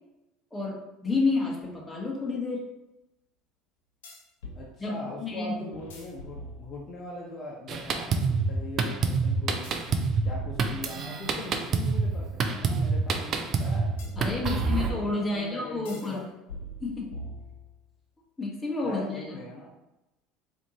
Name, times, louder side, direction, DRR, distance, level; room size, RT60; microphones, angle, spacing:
voice 1, 0.5-2.6 4.8-5.5 14.1-16.2 16.8-17.1 18.4-19.4, left 3 dB, 10° left, -3 dB, 1.1 m, -30 dB
sound 1, 1.6-1.7 4.0-4.6 5.7-7.0 9.6-11.3 14.0-15.0 15.9-16.2 16.5-17.8, left 1 dB, 90° left, 1.0 m, -42 dB
voice 2, 4.5-9.7 10.2-13.9 14.4-16.2 18.8-19.7, left 2 dB, 35° left, -3 dB, 0.8 m, -41 dB
Drum kit, 7.7-14.9, right 4 dB, 45° right, 0.5 m, -27 dB
4.3 x 2.8 x 2.8 m, 0.96 s
supercardioid pair, 90°, 0 cm